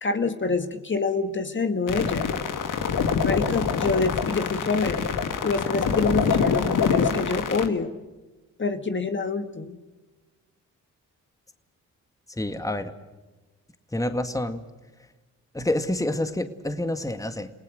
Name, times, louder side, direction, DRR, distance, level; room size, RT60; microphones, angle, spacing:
voice 1, 0.0-2.3 3.2-5.1 5.4-7.9 8.6-9.8, left 4 dB, 35° left, 8 dB, 1.9 m, -26 dB
sound 1, 1.9-7.7, left 6 dB, 75° left, 2.1 m, -25 dB
voice 2, 12.4-12.9 13.9-14.6 15.5-17.5, left 1 dB, 10° left, 8 dB, 1.9 m, -28 dB
29.0 x 18.0 x 6.5 m, 1.2 s
cardioid pair, 65°, 32 cm